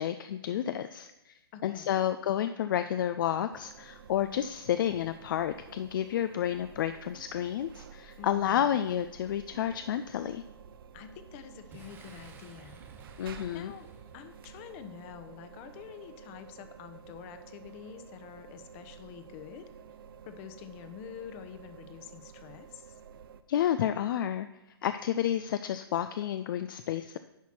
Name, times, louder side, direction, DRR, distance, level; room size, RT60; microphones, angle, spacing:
voice 1, 0.0-1.3 1.6-10.4 13.2-13.7 23.5-24.5 24.8-27.2, left 10 dB, 55° left, 11 dB, 0.4 m, -30 dB
voice 2, 1.5-2.0 8.2-8.8 10.9-12.8 13.1-19.7 20.2-23.0, left 9 dB, 35° left, 9 dB, 0.8 m, -47 dB
sound 1, 3.5-23.4, right 7 dB, 60° right, 0.6 m, -51 dB
Boom, 11.7-15.3, right 5 dB, 15° right, 0.8 m, -54 dB
10.5 x 5.8 x 4.4 m, 0.96 s
hypercardioid pair, 135°, 13 cm